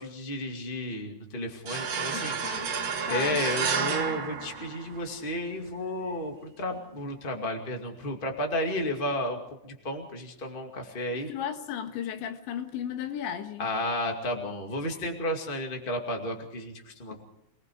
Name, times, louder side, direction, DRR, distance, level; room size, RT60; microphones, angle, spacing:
voice 1, 0.0-2.6 3.1-11.3 13.6-17.2, left 1 dB, 30° left, 1.0 m, -32 dB
sound 1, 1.7-5.2, right 6 dB, 45° right, 2.3 m, -31 dB
voice 2, 2.1-2.7 3.1-3.4 11.3-13.7, left 9 dB, 80° left, 3.8 m, -35 dB
27.0 x 19.5 x 4.9 m
omnidirectional pair, 5.3 m